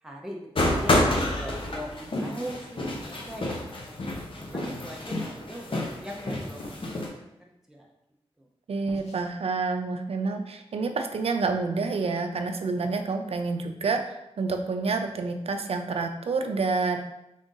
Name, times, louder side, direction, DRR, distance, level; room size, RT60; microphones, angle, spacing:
voice 1, 0.0-7.3 7.7-7.9 8.4-8.5, equal, 5° right, -1 dB, 0.6 m, -41 dB
sound 1, 0.6-7.1, left 1 dB, 50° left, 0.8 m, -29 dB
sound 2, 6.6-7.0 8.9-9.3, left 1 dB, 90° left, 0.8 m, -44 dB
voice 2, 8.7-17.0, right 4 dB, 65° right, 6 dB, 0.4 m, -28 dB
3.6 x 2.5 x 3.8 m, 0.86 s
wide cardioid pair, 70°, 11 cm